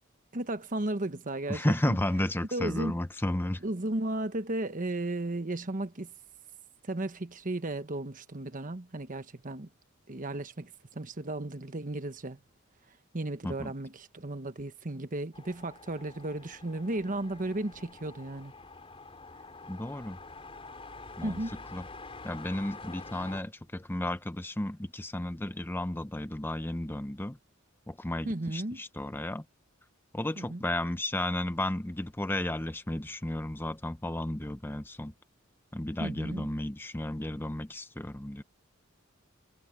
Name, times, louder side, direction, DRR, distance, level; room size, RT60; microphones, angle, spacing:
voice 1, 0.3-2.0 2.5-2.9 3.6-6.1 6.8-9.7 10.1-12.4 13.1-18.5 21.2-21.6 28.2-28.8 30.4-30.6 36.0-36.5, right 2 dB, 40° right, 1.3 m, -34 dB
voice 2, 1.5-3.6 13.4-13.7 19.7-20.2 21.2-21.4 21.7-21.8 22.2-27.4 27.9-29.4 30.1-35.1 35.7-38.4, left 1 dB, 10° left, 0.6 m, -33 dB
sound 1, 15.3-23.4, left 3 dB, 30° left, 4.5 m, -47 dB
head